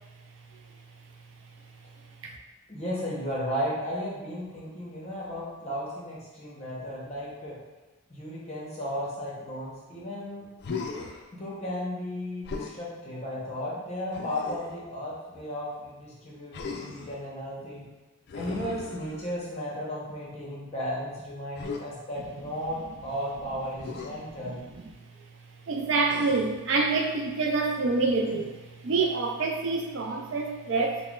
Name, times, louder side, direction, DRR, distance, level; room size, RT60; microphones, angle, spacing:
voice 1, 2.7-7.6 8.1-10.5 11.3-17.9 18.3-24.6, equal, 30° left, -6 dB, 0.8 m, -34 dB
Human voice, 10.6-11.2 12.4-12.8 14.1-14.8 16.5-17.2 18.3-19.5 21.6-21.8 23.8-24.1 26.1-26.6 28.2-28.7, left 4 dB, 50° left, 0.3 m, -38 dB
voice 2, 25.7-28.5 28.8-31.0, right 3 dB, 55° right, 1 dB, 0.3 m, -26 dB
5.5 x 2.1 x 2.3 m, 1.2 s
head